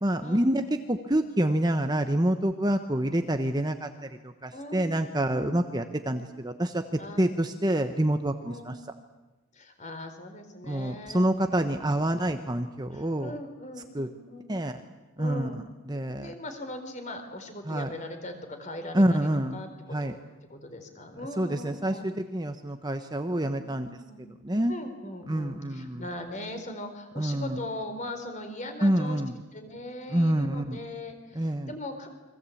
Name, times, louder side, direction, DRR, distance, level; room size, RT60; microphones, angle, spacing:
voice 1, 0.0-3.9 4.2-6.8 7.2-8.7 10.6-13.3 13.9-14.1 14.5-14.7 15.2-15.5 15.9-16.3 17.7-17.9 18.9-19.6 19.9-20.1 21.4-23.9 24.4-24.8 25.3-26.0 27.2-27.6 28.8-29.3 30.1-30.8 31.3-31.7, right 1 dB, 20° right, 7 dB, 1.1 m, -27 dB
voice 2, 4.5-4.9 5.2-5.7 7.0-7.2 8.4-8.8 9.5-11.3 12.9-14.5 15.2-15.6 16.2-20.2 20.5-22.1 23.4-24.2 24.7-29.2 29.5-32.1, left 1 dB, 35° left, 6 dB, 4.2 m, -40 dB
29.5 x 23.5 x 8.7 m, 1.1 s
head